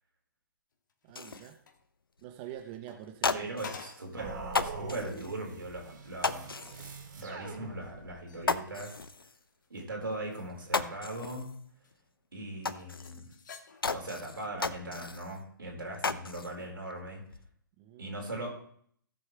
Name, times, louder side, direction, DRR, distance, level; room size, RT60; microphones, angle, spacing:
sound 1, 0.7-1.9 2.6-4.2 4.6-4.7 5.3-5.4 5.8-6.3 7.8-9.8 10.1-11.4 11.8-11.9 12.7-14.1 14.9-15.2, left 5 dB, 60° left, 1.6 m, -52 dB
voice 1, 1.0-1.6 2.2-3.5 17.8-18.0, right 11 dB, 30° right, 5 dB, 0.9 m, -45 dB
sound 2, 1.1-1.5 2.2-2.3 2.6-2.7 3.0-4.0 4.5-5.4 6.2-7.0 7.4-7.5 7.9-8.0 8.4-9.4 10.1-10.2 10.5-11.6 11.9-12.0 12.6-13.3 13.8-15.4 15.7-16.5 16.9-17.5, left 4 dB, 90° left, 0.7 m, -35 dB
voice 2, 3.3-6.7 7.2-9.0 9.7-11.6 12.3-13.3 13.9-17.2 18.0-18.5, right 1 dB, 80° right, 0 dB, 4.5 m, -40 dB
sound 3, 4.2-8.3, right 4 dB, 60° right, 2.9 m, -43 dB
16.5 x 7.4 x 3.3 m, 0.63 s
figure-of-eight pair, 135°, 12 cm